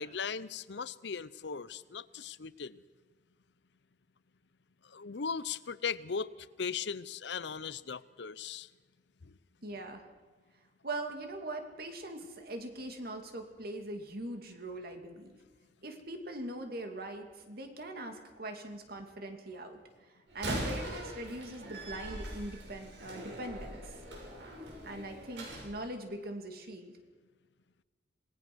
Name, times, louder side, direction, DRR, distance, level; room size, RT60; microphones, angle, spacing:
voice 1, 0.0-2.8 4.9-6.3 6.6-8.7 9.2-9.3, left 6 dB, 70° left, 18 dB, 0.7 m, -38 dB
voice 2, 9.6-10.1 10.8-15.4 15.8-20.1 20.3-23.8 24.8-27.0, right 1 dB, 55° right, 5 dB, 2.5 m, -42 dB
Slam, 20.3-25.7, right 1 dB, 75° right, 6.2 m, -41 dB
26.5 x 19.0 x 6.2 m, 1.4 s
head